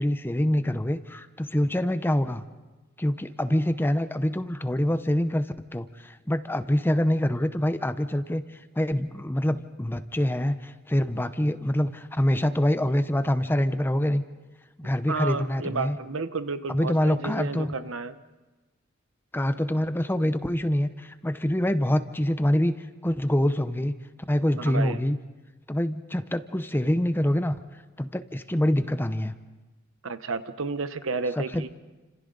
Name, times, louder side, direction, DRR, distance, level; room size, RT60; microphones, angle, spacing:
voice 1, 0.0-2.4 3.0-8.4 8.8-14.2 14.8-16.0 16.7-17.7 19.3-22.8 23.0-23.9 24.3-25.2 25.7-27.6 28.0-29.3 31.4-31.7, left 1 dB, 10° left, 11 dB, 0.7 m, -25 dB
voice 2, 15.1-18.2 24.6-25.0 30.0-31.7, right 4 dB, 75° right, 11 dB, 1.0 m, -31 dB
30.0 x 26.5 x 3.9 m, 1.2 s
head